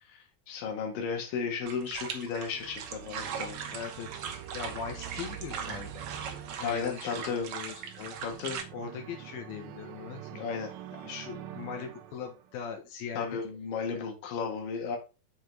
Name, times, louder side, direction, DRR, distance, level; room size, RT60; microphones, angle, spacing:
voice 1, 0.1-3.6 6.6-7.5 8.2-8.6 10.3-10.7 13.1-15.0, left 5 dB, 70° left, 3 dB, 3.2 m, -34 dB
sound 1, 1.7-8.6, right 7 dB, 65° right, 2.0 m, -40 dB
sound 2, 2.5-12.6, right 11 dB, 80° right, 2.6 m, -46 dB
voice 2, 3.7-4.1 4.5-6.0 6.6-8.3 8.7-10.3 11.0-13.3, left 6 dB, 90° left, 3 dB, 3.2 m, -40 dB
7.4 x 5.0 x 4.5 m, 0.30 s
omnidirectional pair, 4.2 m